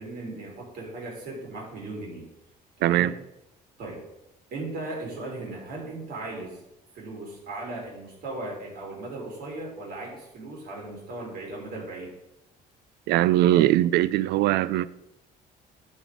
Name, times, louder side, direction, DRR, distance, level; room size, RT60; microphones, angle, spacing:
voice 1, 0.0-2.3 2.8-3.2 3.8-4.0 4.5-6.6 6.9-12.1, right 2 dB, 65° right, 3.4 m, -37 dB
voice 2, 13.1-14.9, right 14 dB, 85° right, 0.4 m, -21 dB
11.0 x 4.3 x 4.8 m
cardioid pair, 110°, 17 cm